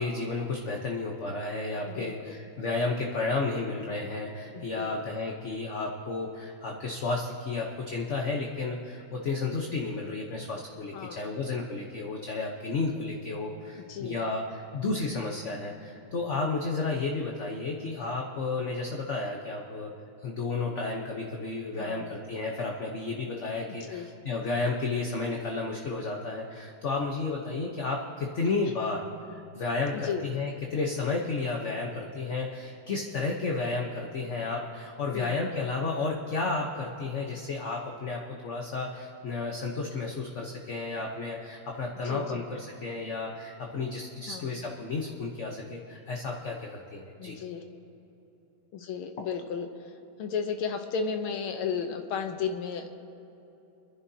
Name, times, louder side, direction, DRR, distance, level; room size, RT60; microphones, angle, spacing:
voice 1, 0.0-19.9 20.2-29.0 29.3-47.4, left 3 dB, 45° left, 0 dB, 1.0 m, -32 dB
voice 2, 1.9-2.4 4.5-5.0 10.9-11.3 13.8-14.2 21.7-22.1 23.7-24.1 30.0-30.2 35.1-35.4 42.1-42.5 44.3-44.6 47.2-47.6 48.7-49.9 50.2-52.9, left 6 dB, 80° left, 6 dB, 1.7 m, -34 dB
27.0 x 11.0 x 2.8 m, 2.9 s
omnidirectional pair, 2.3 m